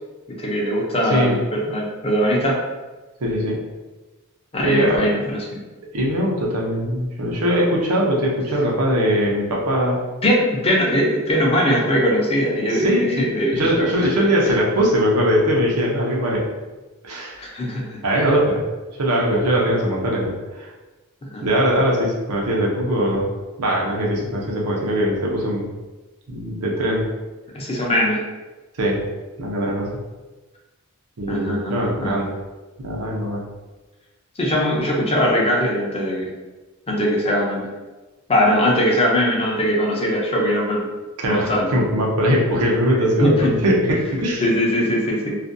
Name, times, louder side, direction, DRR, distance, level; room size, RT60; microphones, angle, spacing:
voice 1, 0.4-2.6 4.5-5.6 10.2-13.9 17.4-18.0 21.3-21.5 27.5-28.2 31.3-32.1 34.4-36.3 36.9-37.7 38.3-40.9 41.3-41.7 43.2-43.5 44.4-45.4, equal, 25° left, -3 dB, 0.5 m, -20 dB
voice 2, 1.0-1.3 3.2-3.6 4.6-5.1 5.9-10.0 12.7-13.2 13.5-16.5 17.0-17.4 18.0-18.6 19.0-20.7 21.4-23.2 23.6-25.7 26.3-27.1 28.8-29.0 29.4-29.9 31.2-32.3 32.8-33.4 41.2-44.4, equal, 90° right, -2 dB, 0.6 m, -21 dB
2.5 x 2.2 x 2.5 m, 1.2 s
head